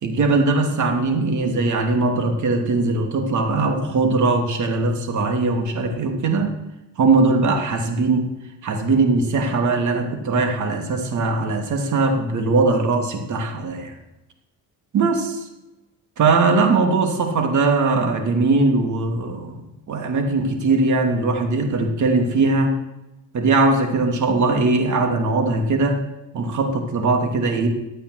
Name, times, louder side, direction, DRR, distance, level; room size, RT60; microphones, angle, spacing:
voice 1, 0.0-6.5 7.0-8.3 8.6-13.9 14.9-15.4 16.2-19.6 19.9-22.7 23.3-26.0 26.3-27.7, right 3 dB, 50° right, 4 dB, 3.2 m, -20 dB
14.5 x 8.9 x 8.1 m, 0.94 s
cardioid pair, 95°, 37 cm